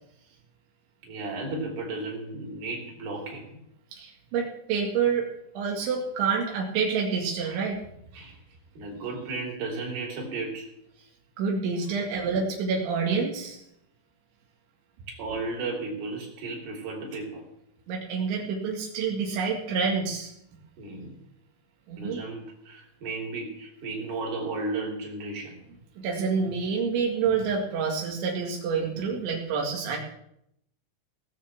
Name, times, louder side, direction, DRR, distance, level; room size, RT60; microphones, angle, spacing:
voice 1, 1.0-3.6 7.4-7.6 8.1-8.4 8.7-10.7 15.1-17.4 20.8-21.1 22.0-25.6, right 3 dB, 60° right, -2 dB, 5.2 m, -34 dB
voice 2, 3.9-5.3 5.6-7.8 11.4-13.6 17.9-20.3 21.9-22.2 26.0-30.0, right 5 dB, 90° right, -1 dB, 4.4 m, -28 dB
19.0 x 6.7 x 7.4 m, 0.77 s
omnidirectional pair, 5.1 m